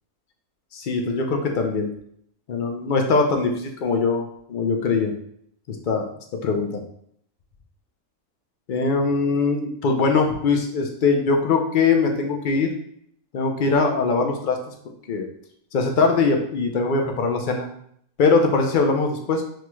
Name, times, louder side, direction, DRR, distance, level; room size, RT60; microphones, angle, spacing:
voice 1, 0.7-1.9 2.5-5.1 5.7-6.0 6.3-6.8 8.7-12.7 13.3-14.6 15.1-15.3 15.7-17.7 18.2-19.4, left 4 dB, 65° left, 3 dB, 0.5 m, -21 dB
6.1 x 3.0 x 2.2 m, 0.68 s
omnidirectional pair, 1.5 m